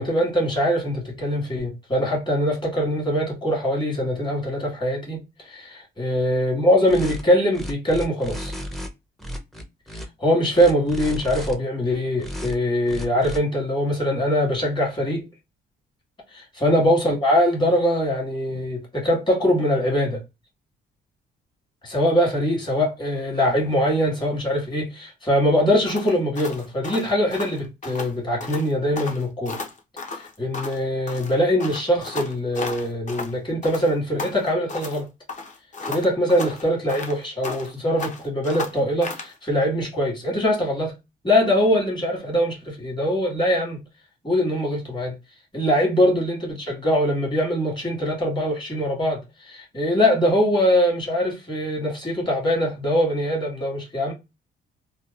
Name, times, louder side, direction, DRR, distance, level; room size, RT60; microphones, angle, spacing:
voice 1, 0.0-5.2 5.5-8.5 10.2-15.2 16.3-20.2 21.8-29.6 30.4-35.0 35.9-40.9 41.2-43.8 44.2-45.1 45.5-54.1, equal, 20° left, 1.5 m, -22 dB
sound 1, 6.9-7.2 7.5-8.9 9.2-10.1 10.5-11.5 12.2-12.5 12.9-13.4, equal, ahead, 0.5 m, -33 dB
sound 2, 25.8-28.1 28.4-28.7 28.9-30.8 31.1-33.3 33.6-35.0 35.3-37.7 38.0-39.3, left 4 dB, 40° left, 0.7 m, -34 dB
2.8 x 2.2 x 2.3 m
cardioid pair, 90°, 20 cm